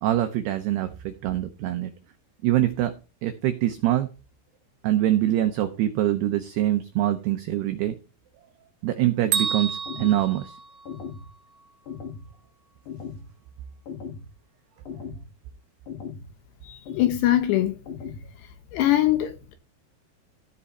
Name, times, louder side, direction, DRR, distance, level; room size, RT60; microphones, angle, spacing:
voice 1, 0.0-1.9 2.4-2.9 3.2-4.1 4.8-7.9 8.8-10.5, right 13 dB, 85° right, 2.3 m, -24 dB
Bell, 9.3-11.3, right 7 dB, 65° right, 3.4 m, -30 dB
sound 1, 9.9-10.3 10.9-11.3 11.9-12.3 12.9-13.3 13.9-14.3 14.9-15.3 15.9-16.3 16.9-17.3 17.9-18.3, left 6 dB, 55° left, 2.5 m, -37 dB
voice 2, 16.7-17.8 18.7-19.5, left 13 dB, 75° left, 2.7 m, -22 dB
15.5 x 5.5 x 4.2 m
omnidirectional pair, 5.8 m